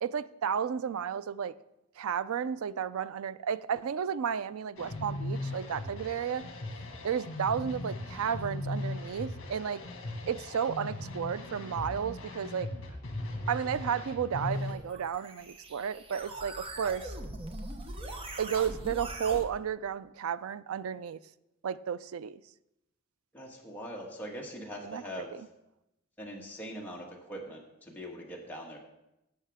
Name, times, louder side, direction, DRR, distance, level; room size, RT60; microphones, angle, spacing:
voice 1, 0.0-1.6 2.0-6.4 7.0-9.8 10.3-12.7 13.5-17.2 18.4-21.2 21.6-22.4 24.8-25.5, right 7 dB, 85° right, 0.4 m, -33 dB
sound 1, 4.8-14.7, left 1 dB, 65° left, 1.7 m, -38 dB
sound 2, 14.5-19.5, right 1 dB, 25° right, 0.9 m, -41 dB
voice 2, 23.3-25.3 26.2-28.8, equal, 10° left, 1.5 m, -42 dB
16.5 x 6.6 x 3.5 m
head